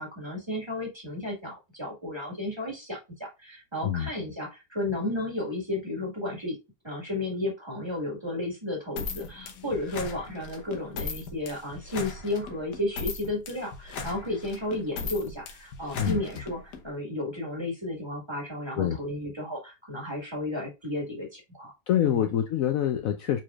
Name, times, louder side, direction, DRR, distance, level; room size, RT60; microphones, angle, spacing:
voice 1, 0.0-6.6 6.8-21.7 22.1-22.3, left 1 dB, 15° right, 1.6 m, -33 dB
sound 1, 9.0-16.8, left 4 dB, 85° left, 1.5 m, -38 dB
voice 2, 21.9-23.4, left 10 dB, 65° left, 0.9 m, -25 dB
4.7 x 4.2 x 2.3 m
omnidirectional pair, 1.7 m